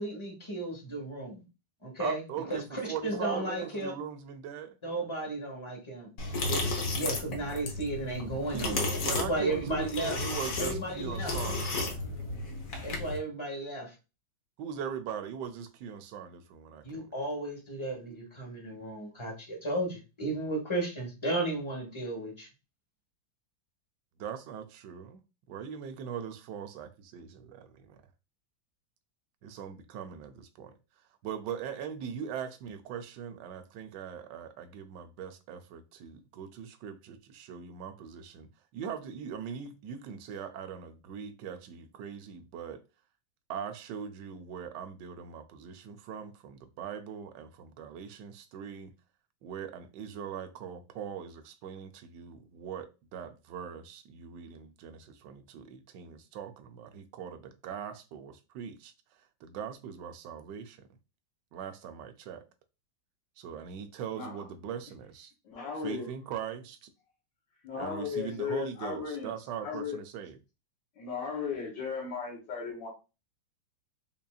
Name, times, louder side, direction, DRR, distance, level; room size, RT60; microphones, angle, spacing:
voice 1, 0.0-1.4 1.8-4.0 4.8-10.2 10.6-11.4 12.8-13.9 16.8-22.5, right 2 dB, 20° left, 0.9 m, -34 dB
voice 2, 2.0-4.8 8.5-11.9 14.6-17.1 24.2-25.2 25.5-28.0 29.4-30.7 31.2-42.8 43.5-48.9 49.4-58.9 59.4-60.8 61.5-62.4 63.4-65.3 65.8-66.9 67.8-70.4, right 8 dB, 75° right, 1.1 m, -41 dB
sound 1, 6.2-13.2, left 3 dB, 55° left, 1.2 m, -33 dB
voice 3, 65.4-66.1 67.6-69.3 69.6-70.0 71.0-72.9, left 6 dB, 75° left, 1.6 m, -36 dB
5.3 x 2.5 x 2.3 m
omnidirectional pair, 2.1 m